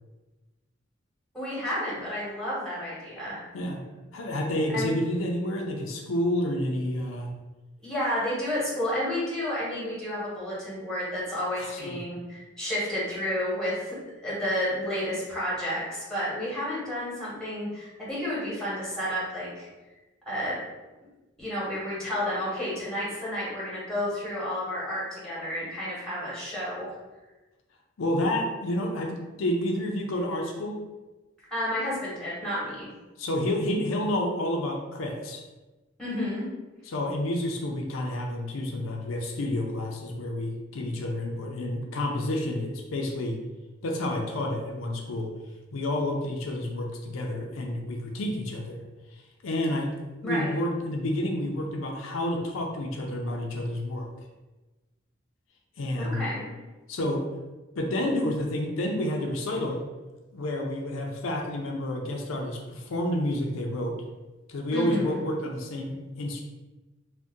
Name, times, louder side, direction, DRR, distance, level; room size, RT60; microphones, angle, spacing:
voice 1, 1.3-3.4 4.7-4.9 7.8-14.0 14.2-19.7 20.3-20.6 21.4-26.9 31.5-32.9 36.0-36.5 50.2-50.6 56.0-56.5 64.7-65.2, left 1 dB, 5° left, -8 dB, 1.2 m, -31 dB
voice 2, 4.1-7.3 11.6-12.0 28.0-30.8 33.2-35.4 36.9-43.4 43.8-45.3 45.7-48.8 49.4-49.9 50.2-54.1 55.8-56.2 56.9-57.3 57.8-59.8 60.3-64.0 64.5-66.4, left 1 dB, 85° left, 1 dB, 0.5 m, -29 dB
2.6 x 2.1 x 3.5 m, 1.1 s
head